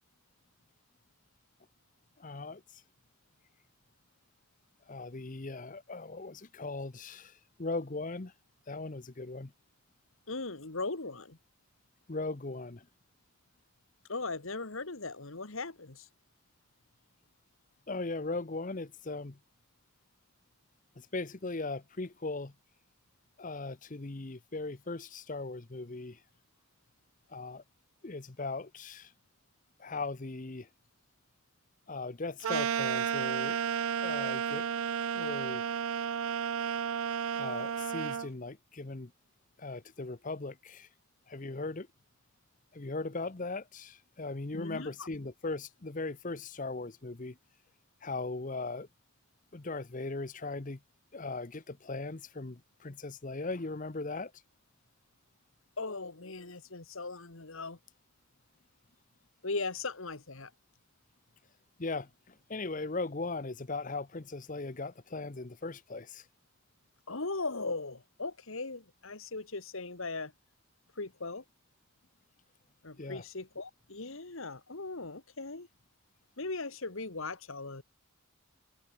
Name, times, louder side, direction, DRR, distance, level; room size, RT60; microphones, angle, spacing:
voice 1, 2.2-2.8 4.9-8.3 8.7-9.5 12.1-12.9 17.9-19.4 21.0-22.5 23.4-26.2 27.3-27.6 28.0-29.1 29.8-30.7 31.9-33.6 34.0-34.7 35.1-35.8 37.4-39.1 39.6-40.9 41.3-41.9 42.7-47.4 48.0-48.9 49.5-50.8 51.1-54.3 61.8-66.2 73.0-73.2, left 3 dB, 35° left, 0.8 m, -38 dB
voice 2, 10.3-11.4 14.1-16.1 44.5-45.1 55.8-57.8 59.4-60.5 67.1-70.3 71.0-71.4 72.8-75.7 76.4-77.8, left 3 dB, 65° left, 1.8 m, -38 dB
sound 1, 32.4-38.3, right 8 dB, 70° right, 0.4 m, -32 dB
head